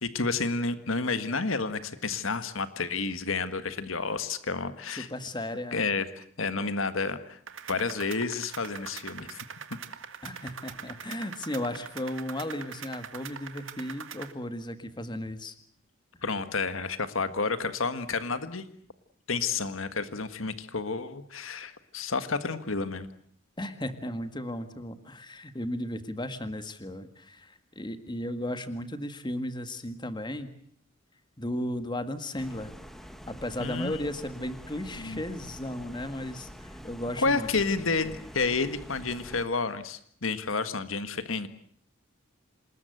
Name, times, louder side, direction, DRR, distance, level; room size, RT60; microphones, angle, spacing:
voice 1, 0.0-5.1 5.7-7.4 7.7-9.4 16.2-18.6 19.3-23.1 33.6-34.0 35.0-35.2 37.2-41.5, left 4 dB, 80° left, 11 dB, 1.6 m, -30 dB
voice 2, 5.0-5.9 10.2-15.6 23.6-30.5 31.4-32.7 33.3-37.9, left 1 dB, 20° left, 10 dB, 1.8 m, -35 dB
sound 1, 7.5-14.3, right 7 dB, 70° right, 2.0 m, -43 dB
sound 2, 32.4-39.5, equal, ahead, 1.7 m, -46 dB
27.5 x 20.5 x 8.0 m, 0.63 s
head